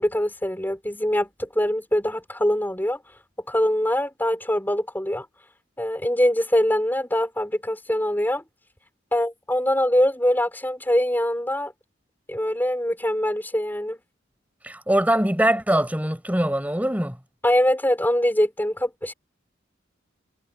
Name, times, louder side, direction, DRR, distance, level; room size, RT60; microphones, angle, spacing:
voice 1, 0.0-3.0 3.5-5.3 5.8-8.4 9.1-11.7 12.3-14.0 17.4-19.1, left 1 dB, 10° left, 3.7 m, -23 dB
voice 2, 14.6-17.2, right 1 dB, 10° right, 4.7 m, -22 dB
head